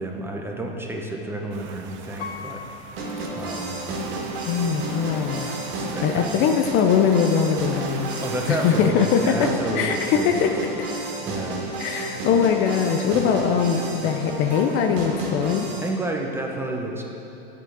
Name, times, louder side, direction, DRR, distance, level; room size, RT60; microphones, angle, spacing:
voice 1, 0.0-2.6 3.3-3.8 5.8-6.3 8.2-10.3 11.2-11.6 12.2-12.4 13.1-13.4 15.8-17.0, right 1 dB, 10° right, 1 dB, 0.9 m, -30 dB
sound 1, 1.5-8.9, right 6 dB, 40° right, 0.7 m, -41 dB
Piano, 2.2-4.2 4.7-4.8, left 6 dB, 85° left, 0.7 m, -40 dB
sound 2, 3.0-15.9, right 2 dB, 60° right, 2.2 m, -31 dB
voice 2, 4.4-5.6 6.0-8.1 8.5-9.5 9.8-10.6 11.8-15.7, left 7 dB, 40° left, 5 dB, 0.6 m, -21 dB
8.8 x 6.7 x 4.8 m, 2.8 s
hypercardioid pair, 105°, 29 cm